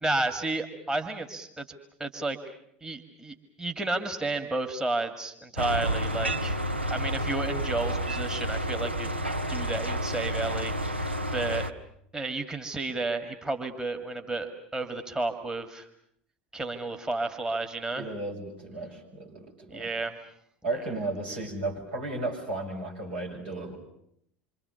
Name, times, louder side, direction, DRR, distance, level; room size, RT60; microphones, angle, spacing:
voice 1, 0.0-1.6 2.0-2.4 2.8-6.6 6.9-9.1 9.5-11.7 12.1-15.9 16.5-18.1 19.7-20.2 20.8-20.9, right 2 dB, 15° right, 6 dB, 2.1 m, -32 dB
sound 1, 5.6-11.7, right 1 dB, 90° right, 1.0 m, -30 dB
voice 2, 17.9-19.9 20.6-23.8, right 2 dB, 70° right, 0 dB, 7.0 m, -34 dB
27.5 x 25.5 x 7.0 m, 0.71 s
figure-of-eight pair, 75°, 6 cm